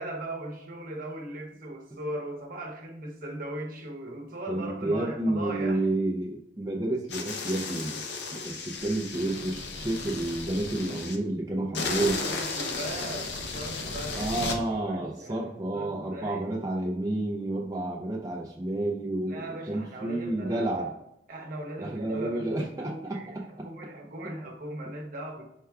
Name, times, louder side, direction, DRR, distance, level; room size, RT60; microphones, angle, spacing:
voice 1, 0.0-5.8 12.0-14.3 14.7-16.6 19.3-20.9 21.3-25.5, right 1 dB, 55° right, 0 dB, 0.9 m, -39 dB
voice 2, 4.5-8.0 8.3-12.2 14.1-19.4 19.7-20.9 21.8-23.2, right 2 dB, 20° right, -3 dB, 0.4 m, -30 dB
sound 1, 7.1-11.2 11.7-14.6, left 3 dB, 75° left, 0.6 m, -34 dB
4.5 x 2.3 x 3.4 m, 0.80 s
head